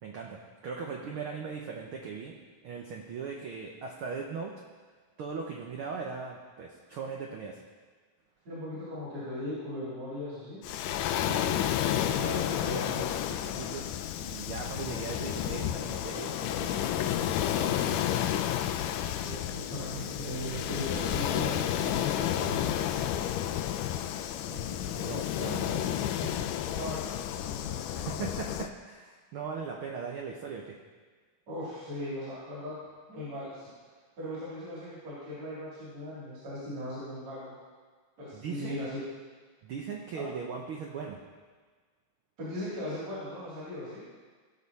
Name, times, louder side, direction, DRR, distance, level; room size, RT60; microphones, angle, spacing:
voice 1, 0.0-2.4 2.6-4.5 5.2-7.6 11.2-18.0 24.5-26.5 27.9-30.8 38.3-38.8 39.6-41.2, right 5 dB, 80° right, 0 dB, 1.2 m, -39 dB
voice 2, 8.5-10.6 19.2-23.1 26.7-27.8 31.5-32.8 33.1-33.7 34.2-37.5 38.2-39.0 40.1-40.2 42.4-44.0, left 1 dB, 55° right, -9 dB, 4.2 m, -38 dB
Waves surf, 10.6-28.7, left 11 dB, 85° left, 2.1 m, -31 dB
sound 1, 13.7-24.8 27.1-27.9, left 5 dB, 65° left, 2.4 m, -55 dB
17.0 x 6.5 x 4.2 m, 1.5 s
omnidirectional pair, 3.6 m